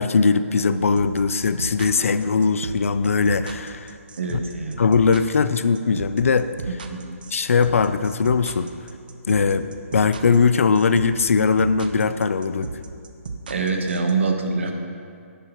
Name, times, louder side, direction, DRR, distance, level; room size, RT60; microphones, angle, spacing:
voice 1, 0.0-3.9 4.8-6.5 7.3-8.7 9.3-9.6 9.9-12.7, left 5 dB, 70° left, 12 dB, 0.4 m, -20 dB
sound 1, 1.0-14.1, right 4 dB, 40° right, 0.5 m, -34 dB
voice 2, 4.2-4.8 6.9-7.1 9.4-9.5 13.5-14.7, right 4 dB, 55° right, 4 dB, 1.1 m, -24 dB
10.5 x 10.0 x 3.0 m, 2.4 s
hypercardioid pair, 175°, 8 cm